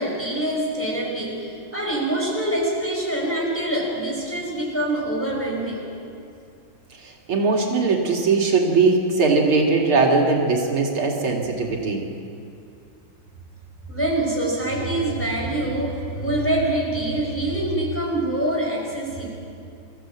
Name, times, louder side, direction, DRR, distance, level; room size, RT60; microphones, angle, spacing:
voice 1, 0.0-5.9 13.9-19.3, right 1 dB, 5° left, -3 dB, 5.4 m, -25 dB
voice 2, 7.0-12.0, right 4 dB, 85° right, 0 dB, 3.2 m, -20 dB
26.0 x 15.5 x 7.7 m, 2.5 s
omnidirectional pair, 2.3 m